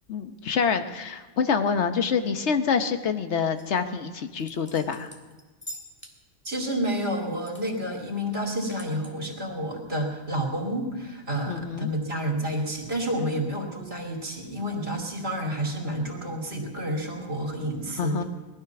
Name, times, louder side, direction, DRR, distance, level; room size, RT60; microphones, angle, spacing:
voice 1, 0.1-5.1 11.5-11.9 18.0-18.2, left 6 dB, 75° left, 8 dB, 1.2 m, -26 dB
sound 1, 3.6-3.8 4.3-6.2 6.5-7.7 7.9-8.0 8.4-9.1, equal, 10° left, 1.6 m, -45 dB
voice 2, 6.4-18.2, right 1 dB, 65° right, 0 dB, 2.8 m, -30 dB
19.0 x 12.5 x 5.9 m, 1.2 s
omnidirectional pair, 1.2 m